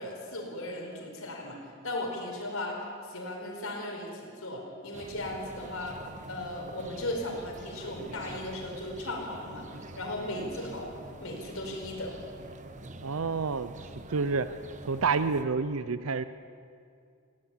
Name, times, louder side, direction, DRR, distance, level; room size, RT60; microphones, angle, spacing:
voice 1, 0.0-1.6 1.8-6.0 6.3-9.6 10.0-10.9 11.2-12.2, left 1 dB, 75° left, 0 dB, 4.7 m, -36 dB
sound 1, 4.9-15.4, right 2 dB, 35° right, 1.1 m, -46 dB
voice 2, 13.0-13.7 14.1-14.5 14.9-16.2, right 4 dB, 80° right, 13 dB, 0.6 m, -28 dB
19.5 x 16.5 x 8.6 m, 2.3 s
head